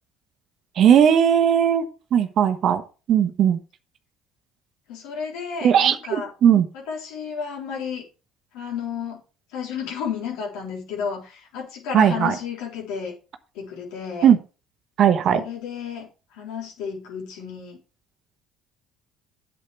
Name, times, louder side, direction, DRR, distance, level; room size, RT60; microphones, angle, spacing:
voice 1, 0.8-2.8 3.1-3.6 5.6-6.6 11.9-12.3 14.2-14.4 15.0-15.4, right 9 dB, 55° right, 9 dB, 1.2 m, -17 dB
voice 2, 4.9-6.3 6.7-8.0 8.5-9.2 9.5-13.1 13.5-14.3 15.3-17.8, left 6 dB, 80° left, -2 dB, 3.9 m, -32 dB
8.3 x 7.7 x 4.6 m, 0.33 s
supercardioid pair, 80°, 0 cm